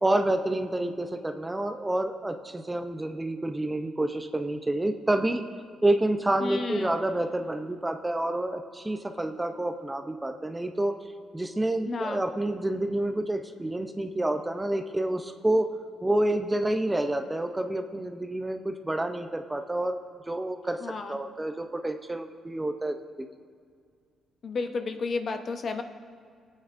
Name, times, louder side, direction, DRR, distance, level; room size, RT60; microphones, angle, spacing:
voice 1, 0.0-5.4 5.8-11.0 11.3-15.7 16.0-20.0 20.3-20.8 21.1-23.0, right 1 dB, 15° right, 6 dB, 0.6 m, -28 dB
voice 2, 6.4-7.0 11.9-12.2 20.8-21.2 24.4-25.8, left 4 dB, 50° left, 6 dB, 0.9 m, -32 dB
23.0 x 8.9 x 2.6 m, 2.2 s
cardioid pair, 90°, 0 cm